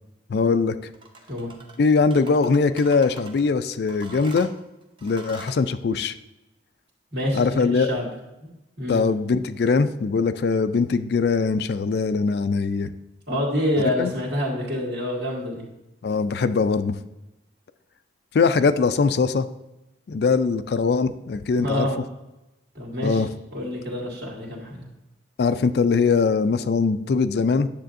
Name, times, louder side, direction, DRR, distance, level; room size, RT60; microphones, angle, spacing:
voice 1, 0.3-0.9 1.8-4.5 5.0-6.1 7.3-7.9 8.9-12.9 14.0-14.1 16.0-16.9 18.3-19.5 20.1-21.9 23.0-23.3 25.4-27.7, left 4 dB, 60° left, 12 dB, 0.3 m, -21 dB
sound 1, 0.9-1.8 2.1-3.4 3.9-5.6, right 3 dB, 25° right, 0.6 m, -43 dB
voice 2, 7.1-8.1 8.4-8.5 8.8-9.0 13.3-15.7 21.6-22.0 22.7-23.2 23.5-24.9, left 1 dB, 60° right, -3 dB, 2.1 m, -27 dB
10.0 x 7.0 x 2.6 m, 0.96 s
head